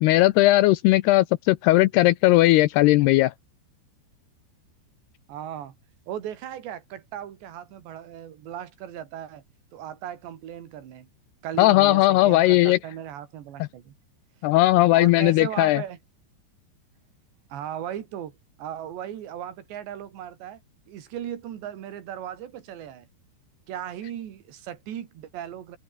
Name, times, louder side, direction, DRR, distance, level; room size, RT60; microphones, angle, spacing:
voice 1, 0.0-3.3 11.6-12.8 14.4-15.8, left 17 dB, 80° left, 2.4 m, -18 dB
voice 2, 5.3-5.7 6.1-9.4 9.7-11.1 11.4-13.9 14.9-16.0 17.5-20.6 20.9-23.1 23.7-25.8, right 10 dB, 75° right, 4.6 m, -37 dB
open air
omnidirectional pair, 5.2 m